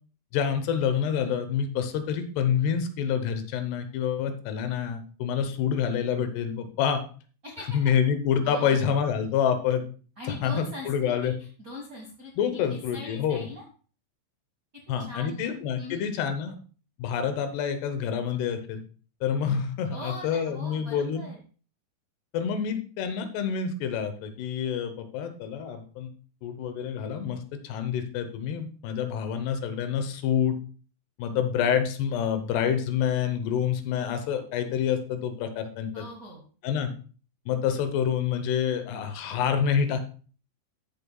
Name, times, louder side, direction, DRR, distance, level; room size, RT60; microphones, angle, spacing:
voice 1, 0.3-7.0 7.7-9.9 10.3-11.4 12.4-13.5 14.9-16.6 17.0-18.8 19.2-21.2 22.3-26.1 26.4-30.6 31.2-36.0 36.6-36.9 37.5-40.0, left 8 dB, 80° left, 9 dB, 3.0 m, -27 dB
voice 2, 8.4-8.8 10.2-11.3 11.6-13.6 15.1-16.0 19.9-21.4 35.9-36.4, left 1 dB, 80° right, -2 dB, 0.7 m, -41 dB
14.0 x 7.0 x 2.3 m, 0.39 s
omnidirectional pair, 4.8 m